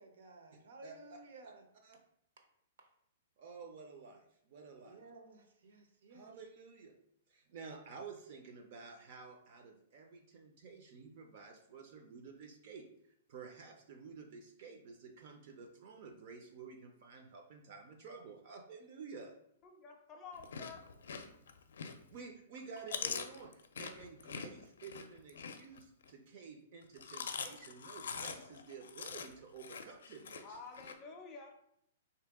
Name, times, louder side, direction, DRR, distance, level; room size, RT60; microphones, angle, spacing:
voice 1, 0.0-1.7 2.4-2.5 2.8-2.9 4.8-6.4, right 2 dB, 70° right, 4 dB, 0.7 m, -56 dB
voice 2, 3.4-5.0 6.1-6.9 7.3-12.8 13.3-19.3 22.1-30.6, right 5 dB, 40° right, 3 dB, 0.4 m, -51 dB
voice 3, 19.6-20.9 30.4-31.5, left 4 dB, 20° left, 3 dB, 0.4 m, -50 dB
Chewing mastication, 20.3-22.2 22.6-26.1 26.8-30.9, left 6 dB, 85° left, 0.4 m, -44 dB
3.7 x 2.8 x 3.5 m, 0.73 s
hypercardioid pair, 170°, 0 cm